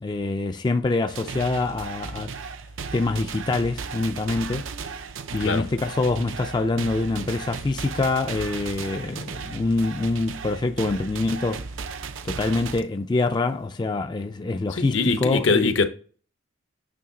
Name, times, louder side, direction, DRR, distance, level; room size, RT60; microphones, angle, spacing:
voice 1, 0.0-2.3 2.9-4.6 5.3-11.6 12.2-15.7, left 3 dB, 20° left, 0.3 m, -25 dB
sound 1, 1.1-12.8, right 5 dB, 75° right, 0.5 m, -36 dB
voice 2, 14.7-15.9, left 4 dB, 70° left, 0.7 m, -23 dB
8.6 x 3.1 x 3.8 m
head